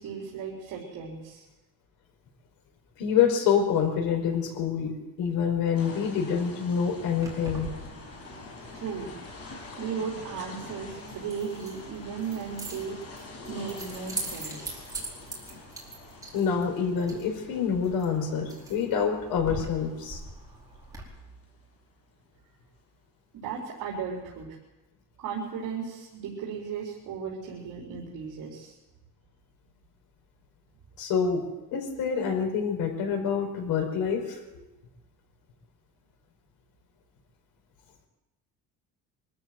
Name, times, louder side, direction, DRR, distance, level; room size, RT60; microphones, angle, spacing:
voice 1, 0.0-1.4 8.8-9.1 9.8-13.0 13.5-14.9 23.3-24.5 25.2-28.8, right 6 dB, 65° right, -3 dB, 4.6 m, -36 dB
voice 2, 3.0-4.9 5.2-7.7 16.3-20.2 31.0-31.4 31.7-34.6, left 7 dB, 80° left, 4 dB, 5.1 m, -26 dB
sound 1, 5.7-21.7, left 3 dB, 45° left, 6.5 m, -46 dB
Keys jangling, 7.2-21.0, right 2 dB, 10° right, 4.6 m, -42 dB
24.0 x 13.5 x 7.9 m, 1.0 s
cardioid pair, 165°, 35 cm